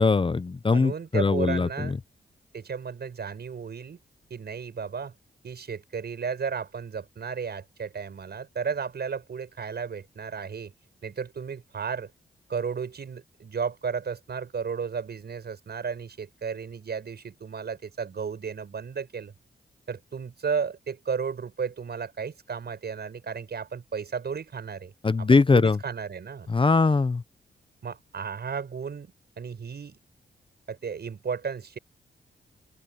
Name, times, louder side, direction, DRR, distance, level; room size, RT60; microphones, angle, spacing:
voice 1, 0.0-2.0 25.0-25.8 26.5-27.2, left 4 dB, 30° left, 0.7 m, -21 dB
voice 2, 0.7-2.0 2.5-4.0 4.3-5.1 5.4-10.7 11.0-12.1 12.5-19.3 19.9-24.9 25.2-26.5 27.8-29.1 29.4-30.0 30.7-31.8, right 6 dB, 65° right, 6.1 m, -34 dB
open air
cardioid pair, 60°, 18 cm